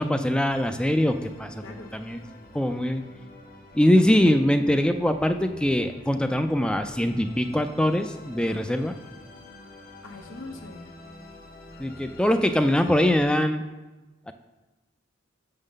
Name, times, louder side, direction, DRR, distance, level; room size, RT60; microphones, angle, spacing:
voice 1, 0.0-1.6 1.9-2.2 2.5-3.0 3.7-8.9 11.8-13.6 14.3-14.4, left 1 dB, 5° left, 8 dB, 0.3 m, -22 dB
Musical instrument, 0.5-13.3, left 1 dB, 45° left, 0.8 m, -47 dB
voice 2, 1.6-1.9 4.0-4.1 8.4-8.6 10.0-10.9, left 2 dB, 80° left, 4 dB, 0.9 m, -42 dB
7.1 x 3.8 x 6.5 m, 1.2 s
head